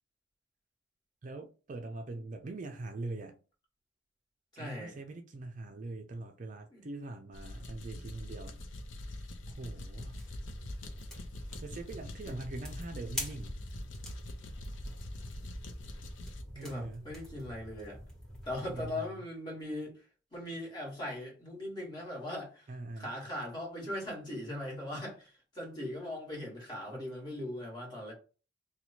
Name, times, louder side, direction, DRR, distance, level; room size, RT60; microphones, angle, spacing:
voice 1, 1.2-3.4 4.6-8.6 9.1-10.2 11.6-13.6 16.5-17.1 18.6-19.2 22.7-23.1, right 2 dB, 40° right, 0.4 m, -43 dB
voice 2, 4.5-4.9 6.7-6.9 12.2-12.4 16.5-18.0 18.4-20.1 20.3-22.7 23.0-28.1, left 1 dB, 25° left, 1.6 m, -40 dB
sound 1, 7.3-16.4, left 1 dB, 80° left, 0.6 m, -44 dB
sound 2, 10.1-18.9, equal, 5° left, 1.3 m, -46 dB
3.0 x 2.2 x 4.2 m
head